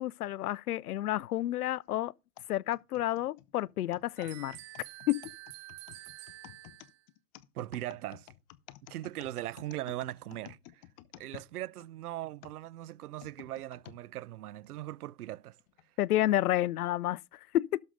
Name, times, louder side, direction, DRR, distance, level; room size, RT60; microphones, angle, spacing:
voice 1, 0.0-2.1 2.5-4.6 5.1-5.2 16.0-17.8, left 14 dB, 70° left, 0.6 m, -30 dB
sound 1, 2.4-11.9 12.4-14.0 14.6-14.7 15.6-15.8, left 15 dB, 25° left, 0.6 m, -53 dB
sound 2, 4.2-7.0, right 17 dB, 20° right, 0.4 m, -48 dB
voice 2, 7.5-8.3 8.9-10.8 11.2-15.6, right 14 dB, 70° right, 0.6 m, -40 dB
12.0 x 6.4 x 3.9 m
hypercardioid pair, 110°, 47 cm